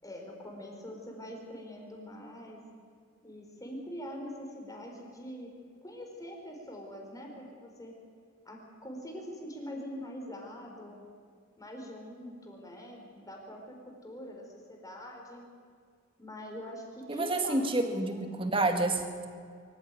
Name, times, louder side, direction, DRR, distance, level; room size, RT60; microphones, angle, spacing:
voice 1, 0.0-2.6 3.2-5.5 5.8-7.9 8.4-11.0 11.6-15.4 16.2-18.2, equal, 20° left, 1 dB, 4.2 m, -44 dB
voice 2, 17.1-19.2, right 2 dB, 25° right, 5 dB, 2.1 m, -29 dB
24.0 x 15.0 x 9.1 m, 2.1 s
head